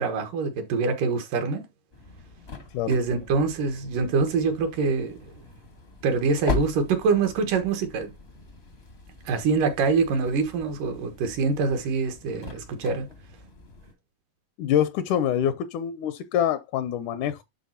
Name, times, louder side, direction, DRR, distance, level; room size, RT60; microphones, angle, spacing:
voice 1, 0.0-1.6 2.9-5.1 6.0-8.1 9.3-13.1, right 4 dB, 80° right, 2.9 m, -25 dB
sound 1, 1.9-13.9, left 4 dB, 60° left, 0.6 m, -39 dB
voice 2, 14.6-17.4, left 10 dB, 80° left, 2.0 m, -25 dB
11.5 x 3.9 x 2.8 m
omnidirectional pair, 3.8 m